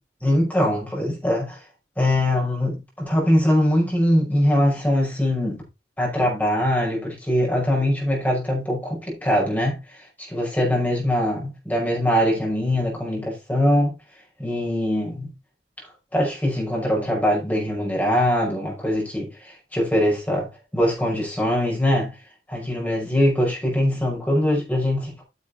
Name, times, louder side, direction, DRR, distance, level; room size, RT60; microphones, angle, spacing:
voice 1, 0.2-1.6 2.0-5.6 6.0-13.9 14.4-15.3 16.1-22.1 22.5-25.2, left 1 dB, 10° left, 5.5 m, -22 dB
9.8 x 7.3 x 4.1 m
head